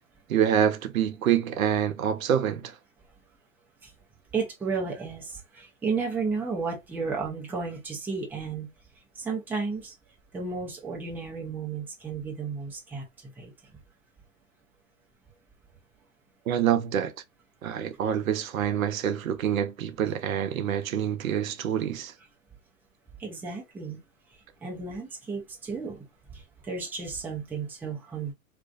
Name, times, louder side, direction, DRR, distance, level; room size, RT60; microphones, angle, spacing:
voice 1, 0.3-2.8 16.5-17.1 17.6-22.1, right 9 dB, 75° right, 0.6 m, -26 dB
voice 2, 4.3-8.7 9.2-9.9 10.3-13.7 23.2-24.0 24.6-26.0 26.3-28.3, right 4 dB, 5° right, 0.5 m, -33 dB
2.4 x 2.2 x 2.3 m
hypercardioid pair, 110°, 42 cm